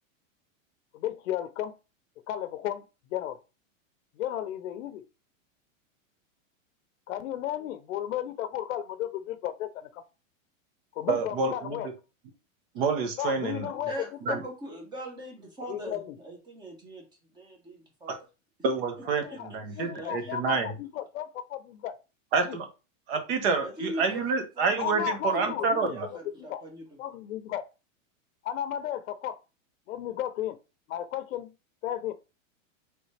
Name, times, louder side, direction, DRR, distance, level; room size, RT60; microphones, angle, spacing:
voice 1, 0.9-1.7 2.3-2.8 3.1-3.4 4.2-5.0 7.1-10.0 11.0-11.9 13.2-13.9 14.3-14.4 15.7-16.1 19.2-22.0 22.5-22.6 24.8-25.9 26.5-26.6 27.0-27.6 28.4-29.4 29.9-30.6 30.9-31.5 31.8-32.1, left 11 dB, 75° left, 0.6 m, -34 dB
voice 2, 11.1-11.8 12.7-13.7 14.3-14.4 18.1-18.2 18.6-20.7 22.3-22.7 23.1-26.1, right 4 dB, 45° right, 1.1 m, -28 dB
voice 3, 13.7-17.0 17.3-18.2 19.3-20.5 23.6-27.0, right 1 dB, 10° right, 0.9 m, -41 dB
3.9 x 3.4 x 3.3 m
supercardioid pair, 160°, 40 cm